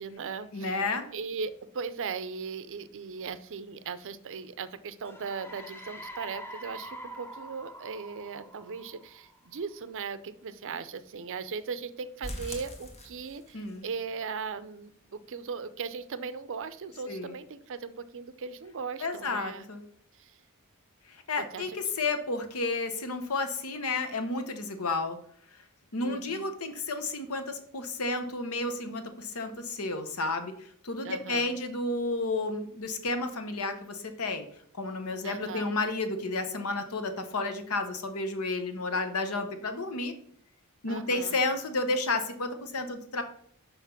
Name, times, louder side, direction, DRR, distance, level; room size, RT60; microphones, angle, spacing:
voice 1, 0.0-0.8 1.1-19.7 20.2-20.3 21.4-21.8 26.0-26.5 31.0-31.5 35.2-35.7 40.9-41.4, right 5 dB, 60° right, 14 dB, 0.5 m, -38 dB
voice 2, 0.5-1.1 13.5-13.9 17.1-17.3 19.0-19.8 21.3-25.2 25.9-30.5 30.8-34.4 34.7-40.1 40.8-43.2, left 3 dB, 70° left, 8 dB, 1.0 m, -31 dB
sound 1, 5.1-9.6, right 1 dB, 10° left, 0.7 m, -45 dB
sound 2, 12.2-13.8 14.1-14.2 14.6-14.7 15.1-15.2, left 1 dB, 30° left, 1.1 m, -41 dB
5.8 x 5.4 x 5.8 m, 0.64 s
head